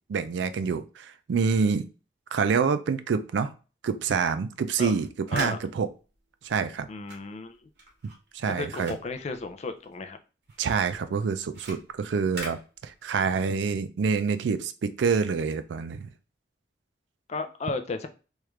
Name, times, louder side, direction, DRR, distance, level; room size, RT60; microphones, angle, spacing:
voice 1, 0.1-1.9 2.3-3.5 3.8-5.9 6.4-6.9 8.3-8.9 10.6-16.1, right 5 dB, 90° right, 11 dB, 0.4 m, -27 dB
sound 1, 4.6-10.1 10.4-13.4, right 1 dB, 65° right, 1.4 m, -44 dB
voice 2, 6.9-7.6 8.5-10.2 17.3-18.1, left 3 dB, 40° left, 8 dB, 0.4 m, -34 dB
3.1 x 2.4 x 3.2 m, 0.34 s
head